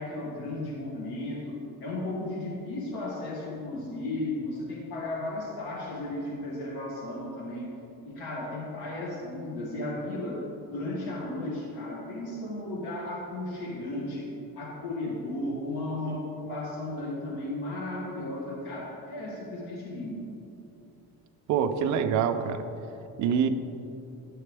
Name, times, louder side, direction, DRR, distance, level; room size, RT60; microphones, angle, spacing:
voice 1, 0.0-7.7 8.0-10.4 10.7-14.3 14.5-20.2, left 1 dB, 85° left, -2 dB, 1.4 m, -35 dB
voice 2, 21.5-22.6 23.2-23.5, right 7 dB, 50° right, 8 dB, 0.5 m, -25 dB
10.0 x 7.6 x 3.4 m, 2.8 s
cardioid pair, 175°, 38 cm